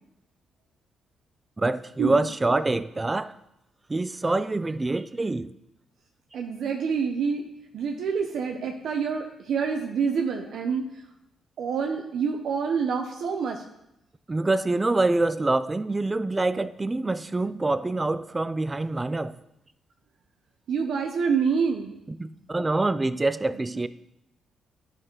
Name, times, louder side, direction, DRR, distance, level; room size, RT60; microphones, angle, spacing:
voice 1, 1.6-3.3 3.9-5.5 14.3-19.4 22.1-23.9, right 2 dB, 20° right, 0.4 m, -25 dB
voice 2, 6.3-7.4 7.7-11.0 11.6-13.6 20.7-22.0, right 6 dB, 75° right, 0.7 m, -27 dB
10.5 x 6.1 x 3.9 m
cardioid pair, 85°, 0 cm